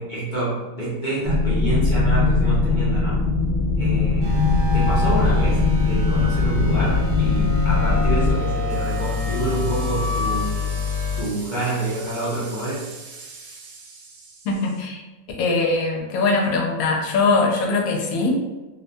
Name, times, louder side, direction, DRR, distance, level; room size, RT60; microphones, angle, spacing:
voice 1, 0.0-3.2 3.8-10.5 11.2-12.9, right 2 dB, 45° left, -8 dB, 0.6 m, -27 dB
sound 1, 1.2-8.3, left 3 dB, 30° right, 1.0 m, -20 dB
sound 2, 4.2-11.2, left 4 dB, 55° right, 1.0 m, -26 dB
sound 3, 8.7-14.8, right 4 dB, 80° right, 1.0 m, -42 dB
voice 2, 14.4-15.0 15.4-18.4, left 3 dB, 90° left, 0 dB, 1.0 m, -21 dB
2.6 x 2.1 x 2.6 m, 1.2 s
omnidirectional pair, 1.4 m